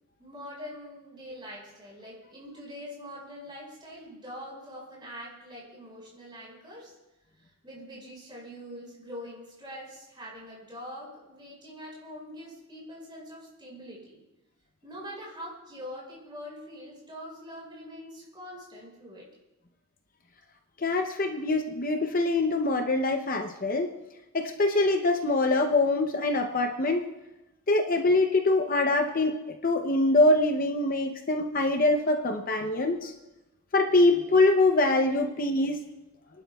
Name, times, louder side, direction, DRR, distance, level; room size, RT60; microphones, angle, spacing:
voice 1, 0.2-6.9 7.4-14.2 14.8-19.3 21.3-21.4, equal, 20° right, -4 dB, 5.1 m, -44 dB
voice 2, 20.8-23.9 24.3-27.0 27.7-33.1 33.7-35.8, left 2 dB, 40° left, 5 dB, 0.6 m, -24 dB
29.5 x 11.5 x 2.3 m, 0.99 s
head